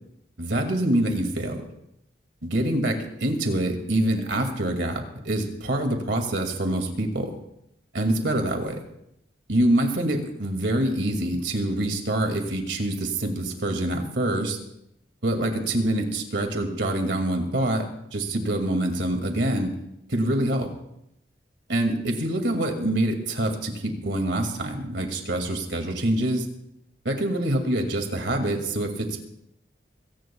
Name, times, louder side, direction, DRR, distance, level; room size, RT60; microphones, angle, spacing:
voice 1, 0.4-1.7 2.4-7.3 7.9-8.8 9.5-14.6 15.2-17.9 18.1-19.7 20.1-20.7 21.7-26.5 27.0-29.3, right 1 dB, 85° right, 4 dB, 2.3 m, -25 dB
23.5 x 17.5 x 2.3 m, 0.80 s
head